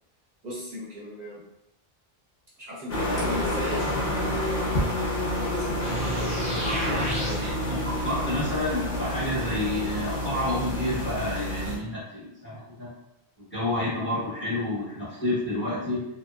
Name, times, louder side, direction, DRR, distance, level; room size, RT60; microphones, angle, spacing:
voice 1, 0.4-1.4 2.6-4.8 5.3-7.4, left 1 dB, 45° right, -7 dB, 0.8 m, -38 dB
sound 1, 2.9-11.8, left 1 dB, 65° left, 0.8 m, -29 dB
sound 2, 5.8-11.3, equal, 15° right, 0.9 m, -36 dB
voice 2, 6.5-12.9 13.4-16.1, left 1 dB, 10° left, -8 dB, 0.8 m, -30 dB
2.6 x 2.2 x 2.2 m, 0.81 s
omnidirectional pair, 1.1 m